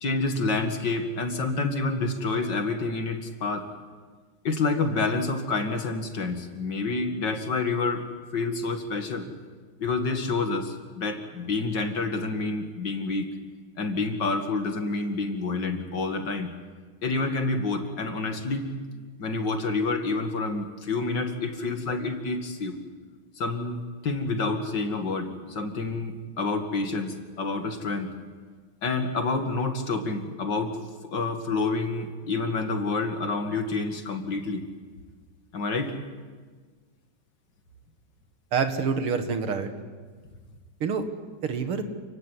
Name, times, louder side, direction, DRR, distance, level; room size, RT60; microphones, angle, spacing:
voice 1, 0.0-3.7 4.4-8.0 8.3-9.3 9.8-13.3 13.8-16.5 17.0-18.7 19.2-22.7 23.4-28.1 28.8-30.8 31.1-34.7 35.5-35.9, left 3 dB, 55° left, 6 dB, 2.7 m, -28 dB
voice 2, 38.5-39.7 40.8-41.1 41.4-41.8, right 5 dB, 85° right, 8 dB, 2.6 m, -26 dB
28.5 x 17.0 x 9.9 m, 1.5 s
omnidirectional pair, 2.3 m